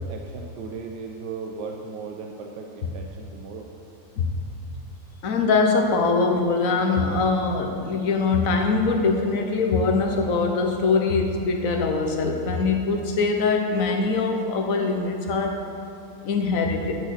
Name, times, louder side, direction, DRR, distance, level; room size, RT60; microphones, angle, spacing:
voice 1, 0.0-3.7, right 5 dB, 85° right, 2 dB, 1.4 m, -36 dB
voice 2, 4.2-4.5 5.2-15.6 16.2-16.9, left 4 dB, 55° left, 3 dB, 1.4 m, -22 dB
11.0 x 6.3 x 6.5 m, 2.5 s
omnidirectional pair, 1.8 m